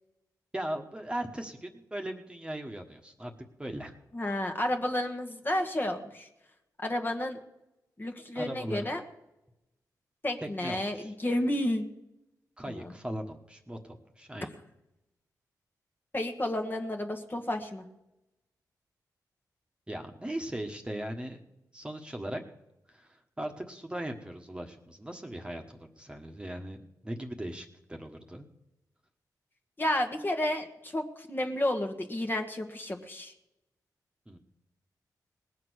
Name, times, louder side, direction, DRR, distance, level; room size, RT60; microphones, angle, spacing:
voice 1, 0.5-3.9 8.3-9.0 10.6-11.1 12.6-14.5 19.9-21.4 21.7-22.4 22.9-28.5 34.3-34.4, right 1 dB, 15° right, 3 dB, 1.4 m, -38 dB
voice 2, 4.1-6.3 6.8-7.4 8.0-9.0 10.2-11.8 12.7-12.9 16.1-17.9 29.8-33.3, left 1 dB, 30° left, 4 dB, 1.5 m, -31 dB
19.0 x 7.5 x 6.4 m, 0.93 s
cardioid pair, 75°, 7 cm